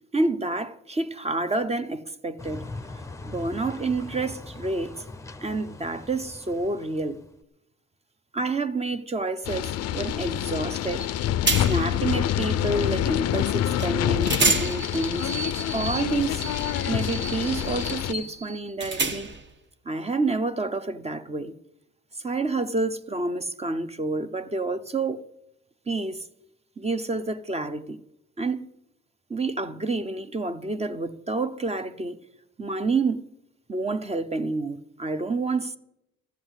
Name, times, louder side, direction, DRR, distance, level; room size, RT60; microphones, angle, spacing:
voice 1, 0.1-2.7 3.2-4.9 5.4-7.2 8.3-11.1 11.6-15.3 15.7-16.4 16.9-19.3 19.8-21.5 22.2-25.2 25.9-26.3 26.8-28.0 28.4-28.7 29.3-32.2 32.6-33.2 33.7-35.8, right 3 dB, 20° right, 0.8 m, -28 dB
sound 1, 2.4-7.4, left 3 dB, 10° left, 0.7 m, -41 dB
sound 2, 9.4-18.1, left 11 dB, 60° left, 0.5 m, -26 dB
sound 3, 11.0-11.1 11.5-12.0 13.8-13.9 14.2-19.5, right 3 dB, 35° right, 1.2 m, -30 dB
13.5 x 7.7 x 8.1 m
cardioid pair, 90°, 30 cm